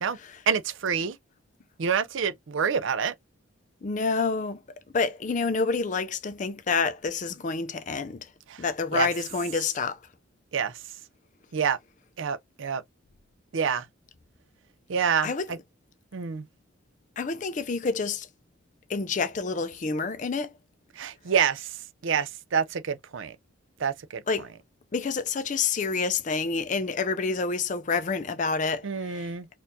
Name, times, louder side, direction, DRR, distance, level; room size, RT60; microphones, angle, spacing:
voice 1, 0.5-1.2 1.8-3.1 8.5-8.6 8.9-9.1 10.5-10.8 11.5-11.8 12.2-12.8 13.5-13.9 14.9-15.6 16.1-16.5 21.0-21.8 22.0-23.4 23.8-24.2 28.8-29.5, right 7 dB, 70° right, 0.5 m, -27 dB
voice 2, 3.8-4.6 4.9-8.3 8.6-10.0 15.2-15.5 17.2-18.3 18.9-20.5 24.3-24.5 24.9-29.3, left 4 dB, 40° left, 0.4 m, -28 dB
4.2 x 2.4 x 2.6 m
head